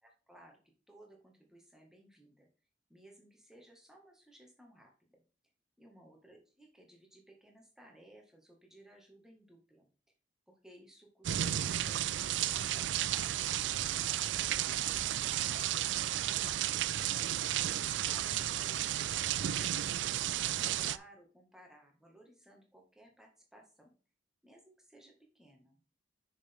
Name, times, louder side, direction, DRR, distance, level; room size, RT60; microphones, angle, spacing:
voice 1, 0.0-0.6 0.9-2.5 2.9-5.2 5.8-9.9 10.5-13.3 15.4-16.7 17.2-17.7 18.0-23.9 24.4-25.8, right 1 dB, 5° right, 1 dB, 1.9 m, -59 dB
sound 1, 11.2-21.0, right 12 dB, 70° right, 0.4 m, -33 dB
6.7 x 6.5 x 3.6 m, 0.37 s
head